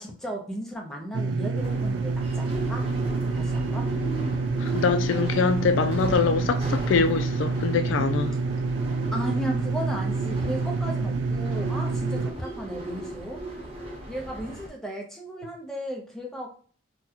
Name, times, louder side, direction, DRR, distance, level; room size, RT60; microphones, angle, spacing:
voice 1, 0.0-2.8 3.3-3.9 9.1-13.4 14.1-16.6, right 1 dB, 5° left, 0.6 m, -35 dB
sound 1, 1.1-12.3, right 3 dB, 65° right, 0.3 m, -27 dB
sound 2, 1.5-14.7, right 1 dB, 30° right, 0.8 m, -37 dB
voice 2, 4.6-8.3, left 5 dB, 75° left, 0.3 m, -24 dB
3.9 x 2.2 x 2.8 m
head